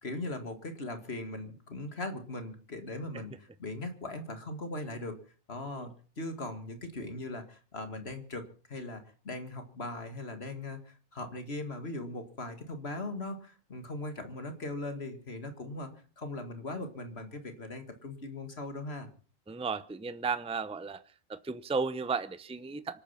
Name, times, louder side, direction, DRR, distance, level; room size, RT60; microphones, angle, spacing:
voice 1, 0.0-5.2 5.5-15.9 16.2-19.1, left 2 dB, 65° left, 7 dB, 2.4 m, -39 dB
voice 2, 19.5-21.0 21.3-23.0, right 4 dB, 5° right, 13 dB, 0.6 m, -34 dB
25.0 x 9.0 x 5.8 m, 0.40 s
omnidirectional pair, 1.2 m